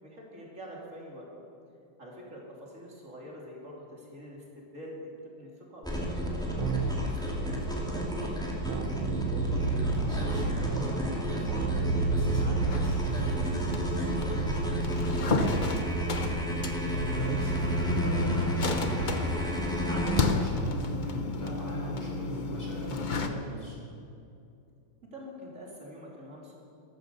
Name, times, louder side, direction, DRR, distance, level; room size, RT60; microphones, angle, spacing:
voice 1, 0.0-1.3 2.0-5.0 5.2-8.3 17.1-17.4 25.1-26.5, equal, 35° right, -2 dB, 3.4 m, -46 dB
sound 1, 5.8-20.2, equal, ahead, 2.5 m, -32 dB
Keyboard (musical), 6.5-7.2 8.6-10.2 11.4-18.5, right 4 dB, 75° right, 2.0 m, -33 dB
voice 2, 9.3-23.8, right 1 dB, 25° left, -4 dB, 5.0 m, -38 dB
sound 2, 12.7-23.3, left 3 dB, 65° left, 0.4 m, -33 dB
13.5 x 13.5 x 7.0 m, 2.6 s
omnidirectional pair, 2.3 m